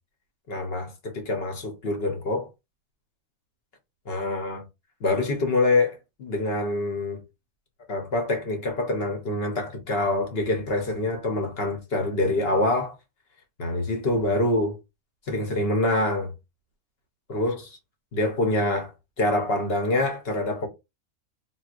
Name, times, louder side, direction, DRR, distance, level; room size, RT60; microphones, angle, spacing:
voice 1, 0.5-2.5 4.1-4.6 5.0-7.2 7.9-13.0 13.6-14.8 15.3-16.3 17.3-17.8 18.1-18.9 19.2-20.7, left 2 dB, 50° left, 1.0 m, -25 dB
4.0 x 2.2 x 2.5 m
omnidirectional pair, 1.5 m